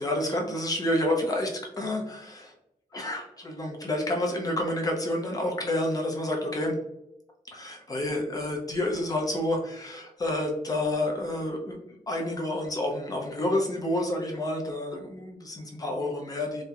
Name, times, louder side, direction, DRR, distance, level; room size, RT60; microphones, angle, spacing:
voice 1, 0.0-1.5 1.8-2.5 2.9-6.8 7.5-16.6, left 1 dB, 25° left, 1 dB, 0.5 m, -29 dB
2.8 x 2.0 x 2.3 m, 0.84 s
wide cardioid pair, 120°, 16 cm